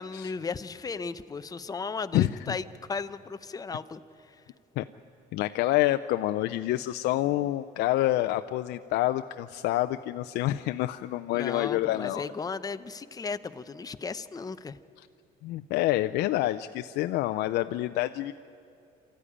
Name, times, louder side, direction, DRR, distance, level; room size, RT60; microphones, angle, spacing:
voice 1, 0.0-2.6 2.9-4.0 11.3-14.8, left 4 dB, 20° left, 11 dB, 0.7 m, -35 dB
voice 2, 2.1-2.6 4.8-4.9 5.3-12.3 15.0-15.1 15.4-18.3, left 15 dB, 80° left, 9 dB, 0.5 m, -27 dB
26.5 x 14.0 x 10.0 m, 2.6 s
cardioid pair, 110°, 17 cm